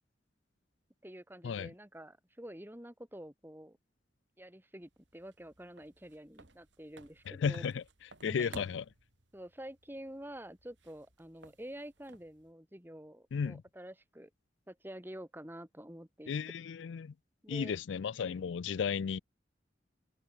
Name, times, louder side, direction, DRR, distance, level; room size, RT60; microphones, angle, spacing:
voice 1, 1.0-3.8 4.4-7.6 8.2-8.6 9.3-14.3 14.7-16.3 17.4-17.7, right 1 dB, 10° right, 2.8 m, -48 dB
sound 1, 4.8-12.5, right 2 dB, 85° right, 4.7 m, -57 dB
voice 2, 7.3-7.8 8.2-8.8 13.3-13.6 16.3-17.1 17.5-19.2, left 6 dB, 85° left, 0.4 m, -34 dB
head